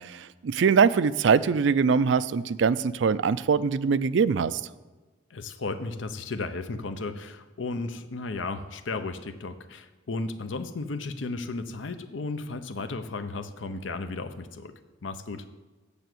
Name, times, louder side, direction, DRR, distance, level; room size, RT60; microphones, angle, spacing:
voice 1, 0.0-4.6, right 6 dB, 75° right, 16 dB, 0.4 m, -23 dB
voice 2, 5.3-14.7 15.0-15.4, left 3 dB, 90° left, 9 dB, 0.7 m, -34 dB
6.9 x 6.8 x 7.8 m, 1.3 s
head